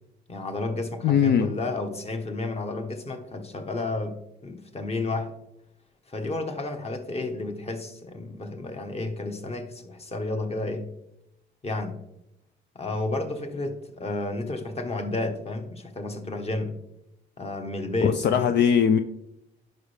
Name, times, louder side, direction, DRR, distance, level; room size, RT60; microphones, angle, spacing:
voice 1, 0.3-5.3 6.1-10.9 11.6-12.0 12.7-16.8 17.4-18.5, left 2 dB, 30° left, 5 dB, 1.3 m, -31 dB
voice 2, 1.0-1.5 18.0-19.0, left 8 dB, 60° left, 9 dB, 0.5 m, -20 dB
10.5 x 5.5 x 3.4 m, 0.84 s
cardioid pair, 90°, 20 cm